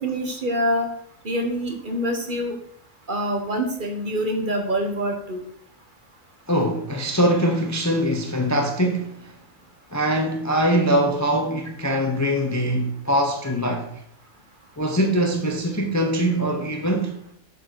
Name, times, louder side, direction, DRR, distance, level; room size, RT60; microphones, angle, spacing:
voice 1, 0.0-0.9 1.2-2.6 3.1-5.4, equal, 40° right, 1.4 m, -25 dB
voice 2, 6.5-9.4 9.9-13.9 14.8-17.2, equal, 15° left, 0.7 m, -22 dB
7.5 x 4.9 x 6.2 m
omnidirectional pair, 1.4 m